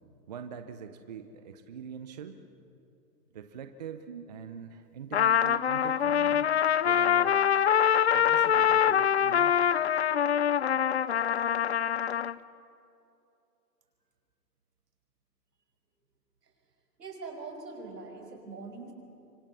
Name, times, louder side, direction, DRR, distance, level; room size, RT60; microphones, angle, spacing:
voice 1, 0.3-2.4 3.3-6.5 6.8-7.5 8.1-9.6 10.3-10.4 10.8-10.9, right 7 dB, 25° right, 8 dB, 0.7 m, -43 dB
Trumpet, 5.1-12.3, left 9 dB, 45° left, 0.5 m, -24 dB
voice 2, 17.0-18.9, right 4 dB, 75° right, 3 dB, 5.7 m, -42 dB
25.5 x 24.5 x 6.9 m, 2.7 s
hypercardioid pair, 155°, 49 cm